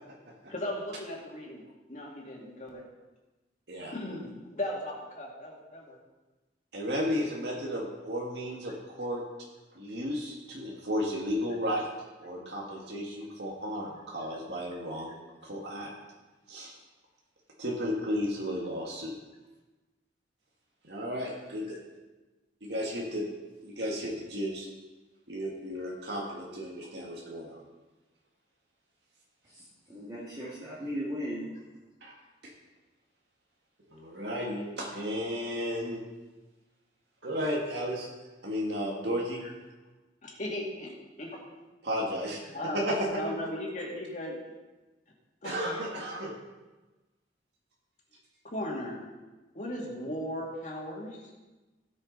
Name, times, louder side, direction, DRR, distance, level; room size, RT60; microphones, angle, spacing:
voice 1, 0.5-1.6 1.9-2.8 3.9-6.0 40.2-40.9 41.2-41.4 42.5-42.8 43.2-44.4 45.4-45.8 48.4-49.0 49.5-51.2, left 1 dB, 45° left, -2 dB, 2.3 m, -37 dB
voice 2, 6.7-9.2 9.8-11.9 12.2-15.9 16.5-16.7 17.6-19.1 20.8-21.8 22.6-23.3 23.6-24.7 25.3-27.6 32.0-32.1 33.9-36.0 37.2-38.1 38.4-39.4 41.8-42.4 42.7-43.2 45.4-46.3, equal, 70° right, -2 dB, 1.8 m, -33 dB
voice 3, 29.4-31.5, equal, 25° right, -8 dB, 1.9 m, -37 dB
17.0 x 6.4 x 3.9 m, 1.2 s
head